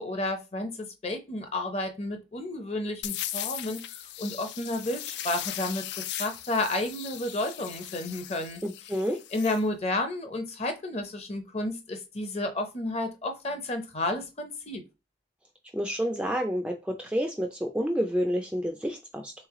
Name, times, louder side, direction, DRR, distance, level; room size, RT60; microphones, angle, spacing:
voice 1, 0.0-5.9 6.2-8.6 9.3-14.8, left 2 dB, 35° left, 0.7 m, -31 dB
sound 1, 3.0-9.6, left 12 dB, 65° left, 0.3 m, -38 dB
voice 2, 8.6-9.2 15.7-19.3, equal, 5° right, 0.4 m, -29 dB
3.7 x 3.2 x 3.6 m
head